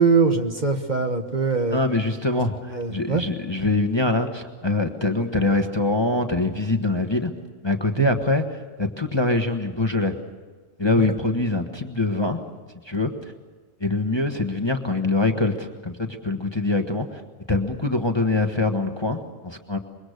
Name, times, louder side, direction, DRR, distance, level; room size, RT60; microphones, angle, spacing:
voice 1, 0.0-1.8 2.7-3.2 8.0-8.1, right 4 dB, 35° right, 5 dB, 1.4 m, -21 dB
voice 2, 1.7-7.3 7.6-10.1 10.8-12.4 12.8-13.3 13.8-17.2 17.5-19.8, left 2 dB, 20° left, 5 dB, 1.2 m, -24 dB
25.0 x 22.5 x 6.5 m, 1.4 s
omnidirectional pair, 1.4 m